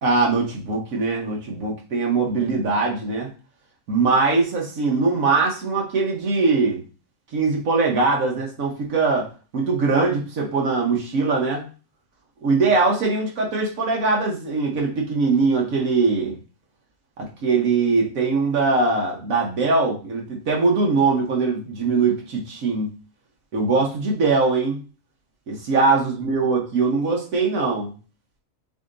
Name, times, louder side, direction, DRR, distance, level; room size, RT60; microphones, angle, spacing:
voice 1, 0.0-3.3 3.9-6.8 7.3-9.3 9.5-11.6 12.4-16.4 17.2-22.9 23.5-24.8 25.5-27.9, right 4 dB, 85° right, -1 dB, 1.4 m, -21 dB
7.4 x 2.8 x 2.6 m, 0.35 s
omnidirectional pair, 1.4 m